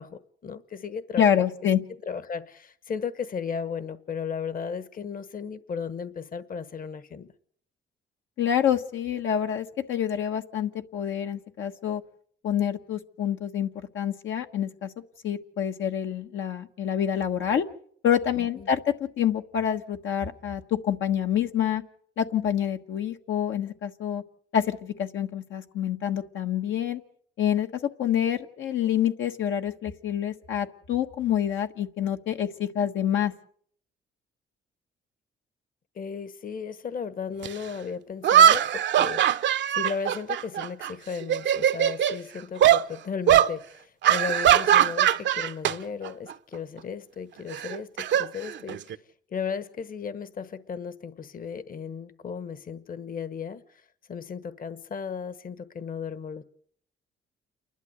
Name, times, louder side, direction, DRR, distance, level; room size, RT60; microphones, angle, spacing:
voice 1, 0.0-1.3 1.8-7.3 18.4-18.7 35.9-49.0 49.3-56.4, left 6 dB, 45° left, 1.3 m, -35 dB
voice 2, 1.2-1.8 8.4-12.0 12.4-13.7 13.9-14.9 15.2-17.6 18.0-21.8 22.2-24.2 24.5-27.0 27.4-33.3, left 9 dB, 75° left, 1.4 m, -27 dB
sound 1, 37.4-37.5 38.2-40.9 41.2-42.2 42.6-42.8 43.3-43.5 44.0-45.7 46.0-46.3 47.5-49.0, right 10 dB, 65° right, 0.8 m, -21 dB
29.0 x 12.0 x 8.0 m
cardioid pair, 90°, 20 cm